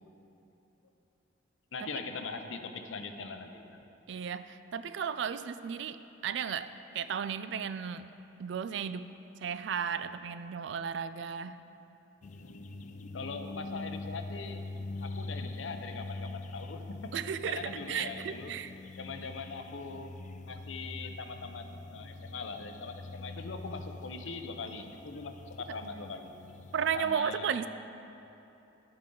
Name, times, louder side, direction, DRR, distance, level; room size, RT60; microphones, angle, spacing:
voice 1, 1.7-3.8 12.4-14.6 15.0-17.1 17.5-18.5 19.0-20.1 20.5-26.3 26.9-27.7, left 4 dB, 80° left, 7 dB, 0.7 m, -41 dB
voice 2, 4.1-8.1 8.4-9.1 9.4-11.6 17.1-18.7 26.7-27.7, right 7 dB, 65° right, 12 dB, 0.3 m, -34 dB
sound 1, 12.2-27.1, left 3 dB, 40° left, 0.3 m, -44 dB
11.0 x 8.9 x 3.8 m, 3.0 s
head